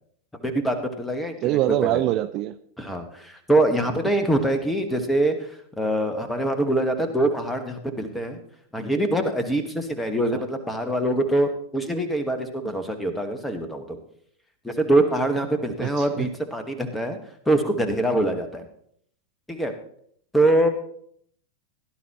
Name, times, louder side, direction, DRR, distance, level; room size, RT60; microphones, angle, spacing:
voice 1, 0.4-2.0 2.8-8.4 8.7-14.0 14.6-17.2 17.4-18.6 19.5-19.7 20.3-20.7, right 1 dB, 5° left, 1.6 m, -24 dB
voice 2, 1.4-2.5 15.8-16.3, right 14 dB, 40° right, 0.4 m, -24 dB
17.0 x 11.5 x 3.1 m
figure-of-eight pair, 90°, 0 cm